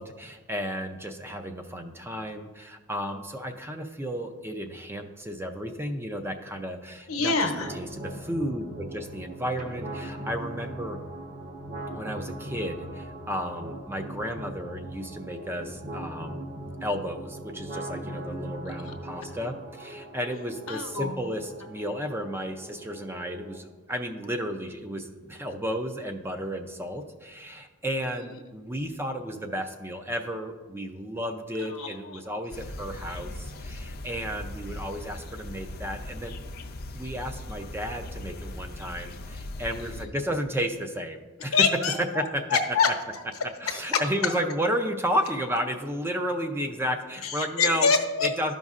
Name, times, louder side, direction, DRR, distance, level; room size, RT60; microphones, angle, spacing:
voice 1, 0.0-11.0 11.9-16.4 16.8-36.4 36.9-41.6 42.0-42.6 43.4-47.9 48.2-48.5, equal, 10° right, 5 dB, 0.4 m, -33 dB
voice 2, 7.1-7.7 18.8-18.9 20.7-21.2 31.7-31.9 39.8-39.9 41.5-42.9 47.2-48.3, left 5 dB, 80° left, 5 dB, 0.8 m, -25 dB
sound 1, 7.6-23.6, right 1 dB, 40° right, 1.0 m, -40 dB
sound 2, 32.5-40.0, left 1 dB, 45° left, 0.5 m, -39 dB
12.5 x 5.3 x 2.4 m, 1.3 s
head